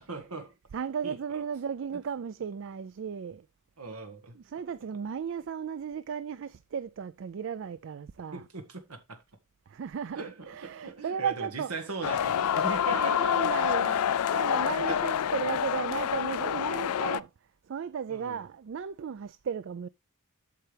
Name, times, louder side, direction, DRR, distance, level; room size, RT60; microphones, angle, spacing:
voice 1, 0.1-0.5 1.0-1.4 3.8-4.3 8.3-9.2 10.1-13.5 14.9-15.0 18.1-18.4, right 3 dB, 85° right, 1.5 m, -39 dB
voice 2, 0.7-3.5 4.4-8.4 9.7-11.7 12.9-17.3 17.7-19.9, right 7 dB, 60° right, 0.4 m, -35 dB
sound 1, 12.0-17.2, left 9 dB, 85° left, 0.4 m, -27 dB
8.6 x 6.8 x 3.3 m
head